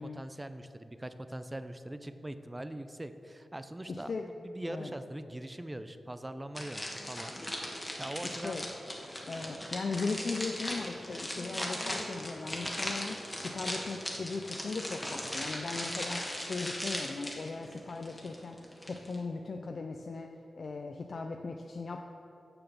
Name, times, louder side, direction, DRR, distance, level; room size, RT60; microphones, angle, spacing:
voice 1, 0.0-8.6, right 1 dB, 15° right, 10 dB, 0.5 m, -42 dB
voice 2, 3.9-4.2 4.7-4.9 8.4-8.6 9.3-18.6 18.9-20.3 20.6-22.0, left 4 dB, 60° left, 4 dB, 0.4 m, -38 dB
sound 1, 6.6-19.2, left 1 dB, 15° left, 1.5 m, -38 dB
6.8 x 6.0 x 7.0 m, 2.7 s
cardioid pair, 70°, 0 cm